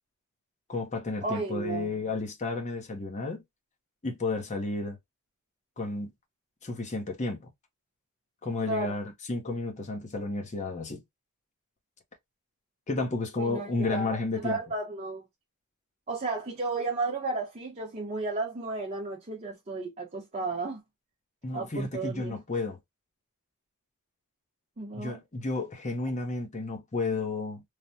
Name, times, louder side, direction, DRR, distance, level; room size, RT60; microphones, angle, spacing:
voice 1, 0.7-3.4 4.0-5.0 5.8-6.1 6.6-7.5 8.4-11.0 12.9-14.6 21.4-22.8 25.0-27.6, left 3 dB, 30° left, 0.7 m, -32 dB
voice 2, 1.2-1.9 8.6-8.9 13.4-15.2 16.1-20.8 21.5-22.3 24.8-25.2, right 3 dB, 30° right, 0.7 m, -33 dB
3.2 x 2.1 x 2.6 m
head